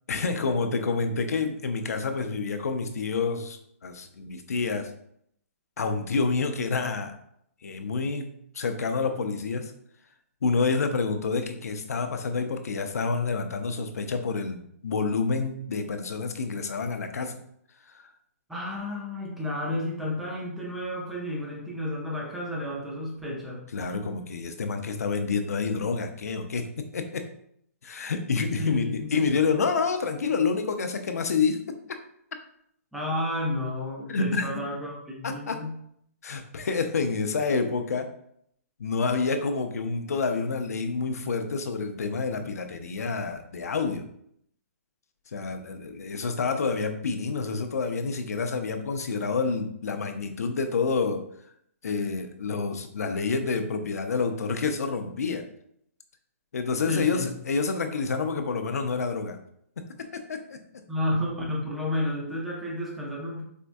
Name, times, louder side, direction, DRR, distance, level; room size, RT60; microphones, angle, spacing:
voice 1, 0.1-4.9 5.8-7.1 7.6-9.7 10.4-17.4 17.9-18.0 23.7-27.3 27.8-31.6 34.1-34.5 35.2-35.6 36.2-38.1 38.8-44.0 45.3-51.2 51.8-55.4 56.5-59.4 60.1-60.6, left 4 dB, 85° left, 7 dB, 0.5 m, -28 dB
voice 2, 18.5-23.6 28.6-29.1 32.9-35.8 56.9-57.3 60.9-63.4, left 1 dB, 5° right, -3 dB, 0.5 m, -31 dB
4.4 x 2.2 x 2.5 m, 0.70 s
hypercardioid pair, 160°, 8 cm